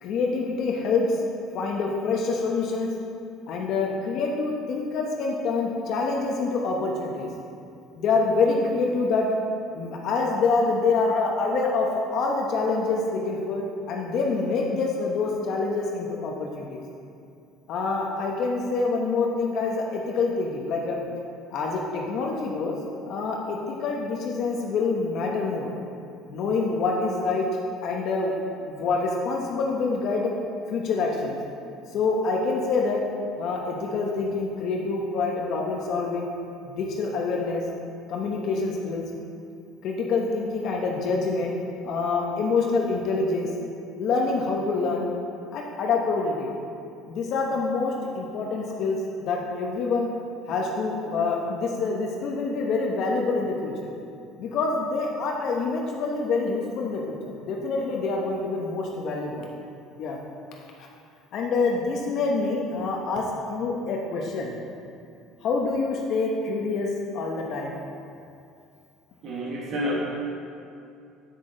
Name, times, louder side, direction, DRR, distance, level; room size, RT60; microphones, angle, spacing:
voice 1, 0.0-1.2 1.5-2.9 3.5-7.3 7.9-9.3 9.7-16.8 17.7-21.0 21.5-22.7 23.1-25.7 26.3-27.5 27.8-30.3 30.7-31.4 31.9-33.0 33.4-36.3 36.6-37.6 38.1-39.0 39.8-41.5 41.8-43.5 44.0-45.1 45.5-46.5 47.1-50.1 50.5-53.9 54.4-59.5 60.0-60.2 61.3-63.2 63.5-64.5 65.4-67.8, left 4 dB, 55° left, -1 dB, 0.9 m, -26 dB
voice 2, 69.2-70.0, equal, 50° right, -4 dB, 1.3 m, -29 dB
8.1 x 6.3 x 3.8 m, 2.5 s
cardioid pair, 120°, 0 cm